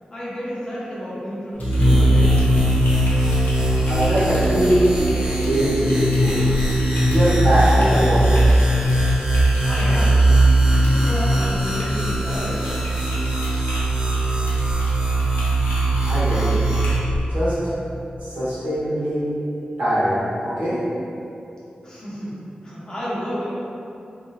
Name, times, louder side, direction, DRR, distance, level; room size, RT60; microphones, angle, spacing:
voice 1, 0.1-2.5 9.6-10.3 10.7-12.7 21.8-22.4 22.6-23.4, equal, 25° left, -9 dB, 0.7 m, -31 dB
Typing, 1.5-17.2, left 1 dB, 80° left, 0.6 m, -35 dB
sound 1, 1.6-17.0, right 1 dB, 20° right, 0.4 m, -19 dB
voice 2, 3.8-4.7 5.4-5.9 6.1-6.4 7.1-8.5 16.0-16.6 17.2-17.5 18.2-19.2 19.8-20.7, equal, 75° right, -12 dB, 1.3 m, -22 dB
2.9 x 2.6 x 2.4 m, 2.8 s
wide cardioid pair, 140°, 3 cm